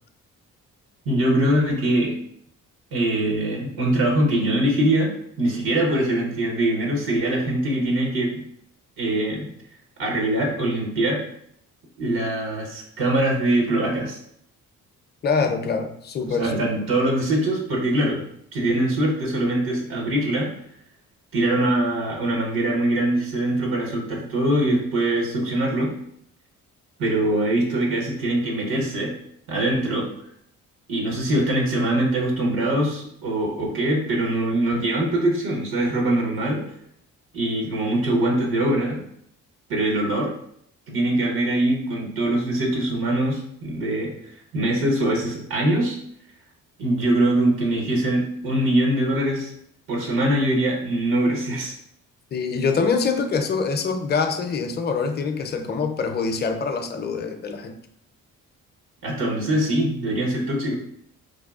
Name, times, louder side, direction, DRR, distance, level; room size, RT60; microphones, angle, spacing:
voice 1, 1.1-2.1 2.9-8.4 9.0-9.5 10.0-11.2 12.0-14.2 16.3-20.5 21.3-25.9 27.0-29.1 29.5-30.1 30.9-36.6 37.3-39.0 39.7-40.3 40.9-46.0 46.8-49.5 49.9-51.8 59.0-60.8, right 1 dB, 80° right, 0 dB, 0.9 m, -23 dB
voice 2, 15.2-16.6 52.3-57.8, left 5 dB, 30° left, 6 dB, 0.4 m, -24 dB
4.5 x 2.3 x 2.3 m, 0.70 s
supercardioid pair, 65°, 35 cm